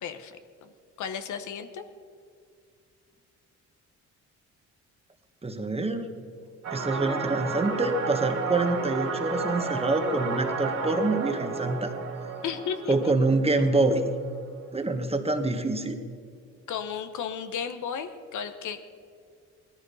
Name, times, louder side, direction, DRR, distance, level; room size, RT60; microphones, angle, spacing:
voice 1, 0.0-0.7 1.0-1.8 12.4-13.1 16.7-18.8, left 7 dB, 75° left, 9 dB, 1.2 m, -34 dB
voice 2, 5.4-6.1 6.7-11.9 12.9-14.1 14.7-16.0, right 2 dB, 20° right, 6 dB, 1.5 m, -26 dB
sound 1, 6.6-14.2, right 4 dB, 70° right, 3.4 m, -32 dB
19.0 x 13.5 x 5.6 m, 2.2 s
cardioid pair, 90°, 30 cm